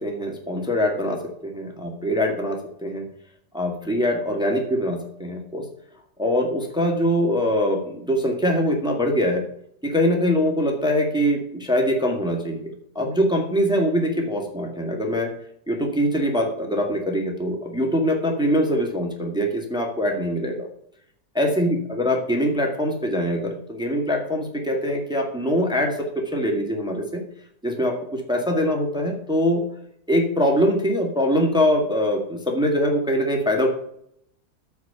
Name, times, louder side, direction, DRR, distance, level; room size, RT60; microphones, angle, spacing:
voice 1, 0.0-3.1 3.5-5.6 6.2-9.4 9.8-12.7 13.0-15.3 15.7-20.7 21.3-26.0 26.3-27.2 27.6-29.6 30.1-33.7, equal, 5° right, 1 dB, 1.8 m, -23 dB
14.0 x 4.8 x 7.0 m, 0.71 s
omnidirectional pair, 1.7 m